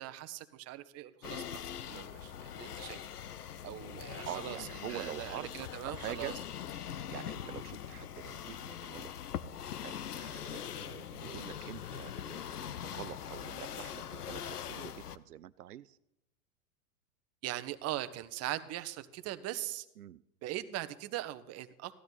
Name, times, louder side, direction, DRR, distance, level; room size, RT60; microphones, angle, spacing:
voice 1, 0.0-1.6 1.9-3.0 3.6-6.3 17.4-19.9 20.4-22.0, right 14 dB, 35° right, 11 dB, 1.0 m, -40 dB
sound 1, 1.2-15.2, left 9 dB, 90° left, 0.8 m, -42 dB
voice 2, 4.2-6.3 7.1-9.1 9.8-16.0 20.0-20.2, right 12 dB, 85° right, 15 dB, 0.6 m, -46 dB
15.5 x 12.5 x 4.0 m, 0.85 s
hypercardioid pair, 100°, 45 cm